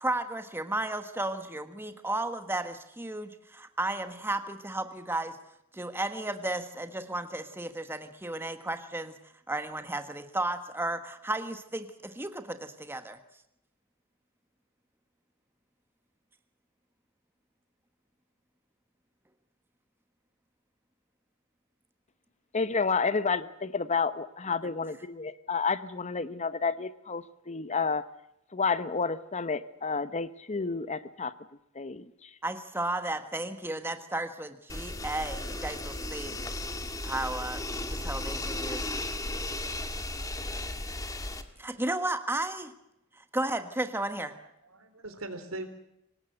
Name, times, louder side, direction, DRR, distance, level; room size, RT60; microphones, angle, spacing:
voice 1, 0.0-3.3 3.8-5.3 5.8-9.1 9.5-11.9 12.2-12.4 12.9-13.2 32.4-36.3 37.0-37.6 38.0-38.8 41.6-42.7 43.3-44.3, right 2 dB, 10° right, 8 dB, 1.4 m, -33 dB
voice 2, 22.5-28.1 28.5-31.3 31.7-32.3, left 5 dB, 35° left, 14 dB, 0.9 m, -30 dB
sound 1, 34.7-41.4, left 1 dB, 15° left, 1.8 m, -35 dB
voice 3, 44.3-45.7, right 2 dB, 75° right, 9 dB, 3.7 m, -41 dB
24.5 x 19.5 x 7.9 m, 0.82 s
head